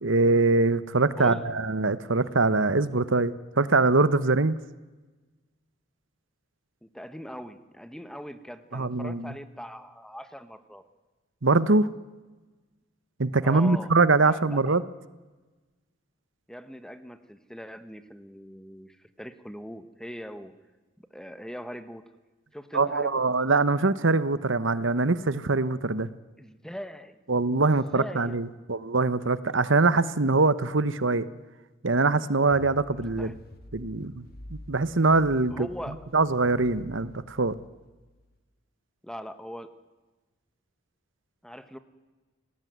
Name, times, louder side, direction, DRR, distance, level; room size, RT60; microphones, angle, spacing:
voice 1, 0.0-4.6 8.7-9.3 11.4-11.9 13.2-14.8 22.7-26.1 27.3-31.3 31.8-33.3 33.7-34.3 34.7-35.7 36.1-37.6, right 3 dB, 65° right, 16 dB, 1.1 m, -23 dB
voice 2, 1.1-1.5 6.8-10.8 13.4-14.8 16.5-20.5 21.1-22.1 22.5-23.2 26.4-27.2 27.6-28.7 33.2-33.4 35.5-36.1 39.0-39.7 41.4-41.8, equal, 5° left, 11 dB, 1.5 m, -41 dB
sound 1, 32.5-38.4, left 1 dB, 50° left, 3.0 m, -48 dB
28.5 x 19.5 x 9.5 m, 1.2 s
head